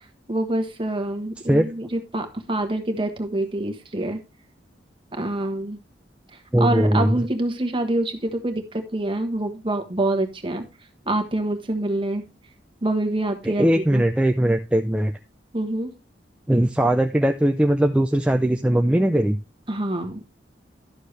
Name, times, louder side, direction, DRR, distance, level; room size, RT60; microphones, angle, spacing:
voice 1, 0.3-4.2 5.1-5.8 6.3-10.6 11.1-12.2 12.8-14.0 15.5-15.9 19.7-20.2, right 1 dB, 30° right, 6 dB, 1.3 m, -26 dB
voice 2, 6.5-7.3 13.4-15.1 16.5-19.4, right 1 dB, 5° right, 5 dB, 0.4 m, -20 dB
11.5 x 6.6 x 3.2 m, 0.27 s
head